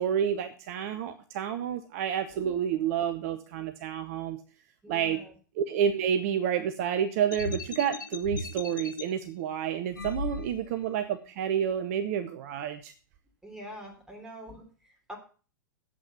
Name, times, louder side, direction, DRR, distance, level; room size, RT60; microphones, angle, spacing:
voice 1, 0.0-4.4 4.9-5.2 5.6-12.9, right 8 dB, 45° right, 9 dB, 0.9 m, -29 dB
voice 2, 2.3-2.6 4.8-5.3 13.4-15.2, equal, 5° right, 1 dB, 3.4 m, -45 dB
sound 1, 7.3-9.0 9.9-10.9, left 3 dB, 75° left, 0.9 m, -36 dB
8.6 x 7.9 x 6.9 m, 0.39 s
figure-of-eight pair, 95°, 11 cm